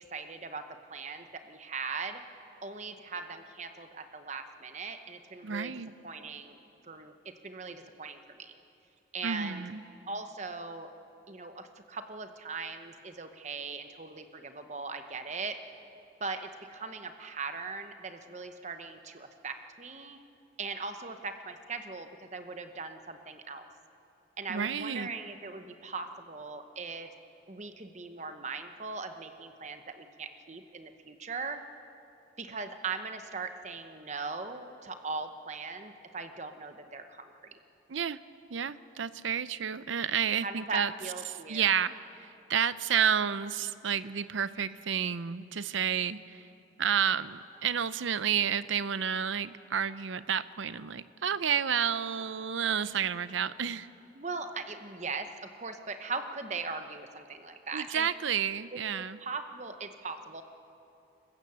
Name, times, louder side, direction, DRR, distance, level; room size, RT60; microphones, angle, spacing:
voice 1, 0.1-2.2 2.6-5.7 6.0-6.6 6.8-7.1 7.4-8.5 9.1-9.6 10.1-10.9 11.3-15.6 16.2-20.2 20.6-23.7 24.4-27.1 27.5-31.6 32.4-37.6 40.4-41.8 54.1-58.1 58.7-58.8 59.2-60.4, right 4 dB, 35° right, 7 dB, 0.9 m, -39 dB
voice 2, 5.4-5.9 9.2-9.8 24.5-25.1 37.9-38.2 38.5-40.9 41.5-46.4 46.8-53.9 57.7-59.2, right 8 dB, 80° right, 15 dB, 0.6 m, -30 dB
28.0 x 15.5 x 6.9 m, 2.9 s
head